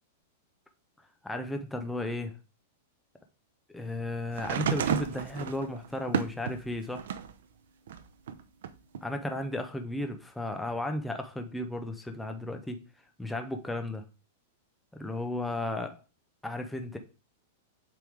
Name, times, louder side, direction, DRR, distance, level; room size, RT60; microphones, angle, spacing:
voice 1, 1.2-2.3 3.7-7.1 9.0-12.8 13.2-14.0 14.9-16.0 16.4-17.0, left 1 dB, 5° left, 5 dB, 0.4 m, -34 dB
sound 1, 4.3-7.4 7.9-9.0 10.0-10.1, right 7 dB, 70° right, 0.7 m, -32 dB
7.6 x 3.4 x 4.9 m, 0.33 s
supercardioid pair, 175°, 0 cm